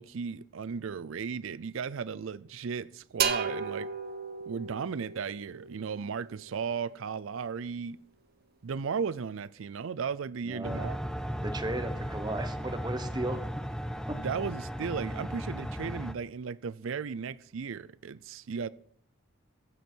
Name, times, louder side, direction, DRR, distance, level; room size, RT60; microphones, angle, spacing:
voice 1, 0.0-3.9 4.5-8.0 8.6-11.0 14.1-18.7, right 6 dB, 70° right, 0.4 m, -35 dB
sound 1, 3.2-6.8, right 6 dB, 45° right, 0.9 m, -35 dB
voice 2, 10.4-10.9 11.4-13.4, right 1 dB, 20° right, 1.1 m, -35 dB
sound 2, 10.6-16.1, equal, 5° left, 0.6 m, -36 dB
23.0 x 8.3 x 4.5 m
head